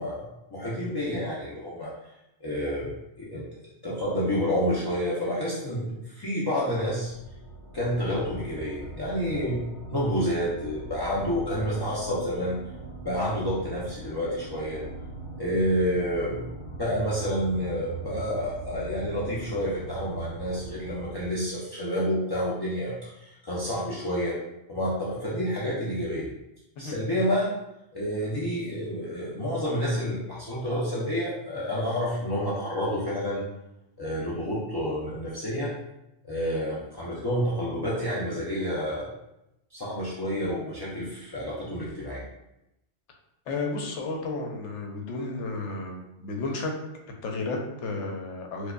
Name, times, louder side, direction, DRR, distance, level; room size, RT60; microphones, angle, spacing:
voice 1, 0.0-1.9 2.4-3.4 3.8-7.1 7.7-12.5 13.0-14.8 15.4-16.4 16.8-24.4 24.7-26.3 26.8-27.5 27.9-33.4 34.0-35.7 36.2-39.1 39.7-42.2, equal, 40° left, -7 dB, 0.3 m, -29 dB
sound 1, 7.0-21.3, right 3 dB, 45° right, 0.8 m, -40 dB
voice 2, 43.5-46.7 47.2-48.7, left 3 dB, 80° left, 1 dB, 0.9 m, -32 dB
4.7 x 2.2 x 2.2 m, 0.88 s
omnidirectional pair, 1.2 m